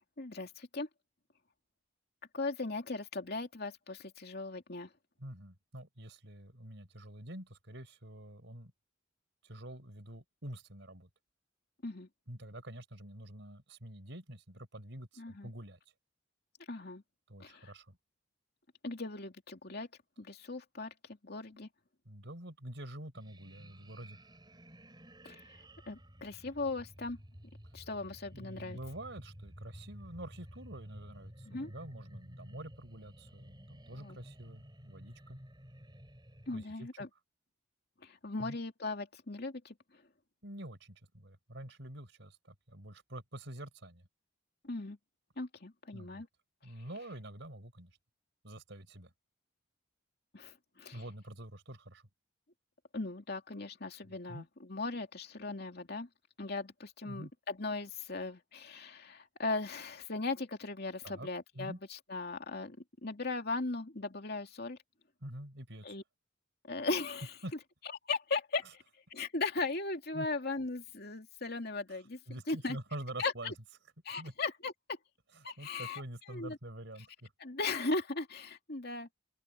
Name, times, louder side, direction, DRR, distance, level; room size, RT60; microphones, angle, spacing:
voice 1, 0.2-0.9 2.3-4.9 11.8-12.1 15.2-15.5 16.7-17.0 17.4-17.7 18.8-19.9 20.2-20.9 21.2-21.7 25.2-25.4 25.9-27.2 27.7-28.8 31.5-31.7 33.9-34.2 36.5-37.1 38.0-39.7 44.6-45.0 45.4-46.3 50.3-51.0 52.9-56.1 56.4-62.8 63.0-64.8 65.8-66.0 66.6-67.3 68.1-68.8 69.1-72.2 72.5-72.8 73.2-73.5 74.0-75.0 75.4-76.0 76.3-76.6 77.4-79.1, left 3 dB, 55° left, 2.7 m, -38 dB
voice 2, 5.2-8.7 9.4-11.1 12.3-15.8 17.3-18.0 22.1-24.2 28.3-35.4 36.5-36.9 38.4-38.6 40.4-44.0 45.9-46.3 46.6-47.9 48.4-49.1 50.9-52.0 54.0-54.5 57.0-57.3 61.0-61.3 61.6-61.8 65.2-66.0 67.4-67.5 70.1-70.3 71.9-72.0 72.3-73.5 74.2-74.3 75.3-77.3, right 1 dB, 65° right, 5.5 m, -47 dB
sound 1, 23.1-36.6, equal, 20° right, 5.6 m, -53 dB
open air
head